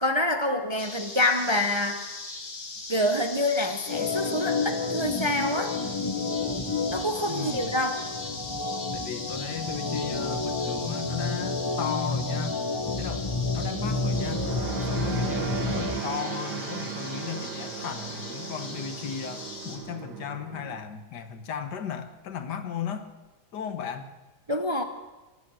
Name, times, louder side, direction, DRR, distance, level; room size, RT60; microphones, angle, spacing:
voice 1, 0.0-2.1 2.9-5.8 6.9-8.0 24.5-24.8, left 1 dB, 25° right, 6 dB, 0.6 m, -26 dB
sound 1, 0.8-19.8, left 3 dB, 60° left, 2.5 m, -39 dB
sound 2, 2.8-3.2 3.6-3.7 10.7-20.8, right 7 dB, 85° right, 1.6 m, -37 dB
Organ, 3.9-16.0, left 3 dB, 30° left, 0.4 m, -30 dB
voice 2, 7.3-7.8 8.9-12.6 13.0-14.5 14.9-23.1 23.5-24.1, left 7 dB, 90° left, 9 dB, 1.8 m, -36 dB
23.0 x 8.5 x 6.2 m, 1.1 s
omnidirectional pair, 1.7 m